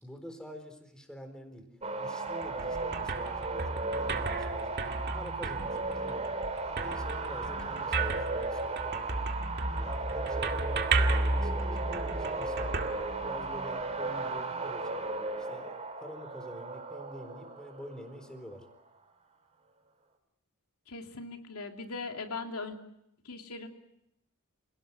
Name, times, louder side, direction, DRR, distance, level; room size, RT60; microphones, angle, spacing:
voice 1, 0.0-1.7 2.0-4.8 5.1-6.3 6.7-9.2 9.7-12.9 13.2-15.0 15.4-18.7, equal, 5° left, 6 dB, 4.1 m, -47 dB
sound 1, 1.8-18.5, right 3 dB, 30° right, 2.9 m, -36 dB
sound 2, 2.3-13.8, right 2 dB, 50° right, 2.1 m, -34 dB
voice 2, 20.9-22.8 23.2-23.7, left 3 dB, 80° left, 4 dB, 2.9 m, -39 dB
29.0 x 18.0 x 9.7 m, 0.83 s
head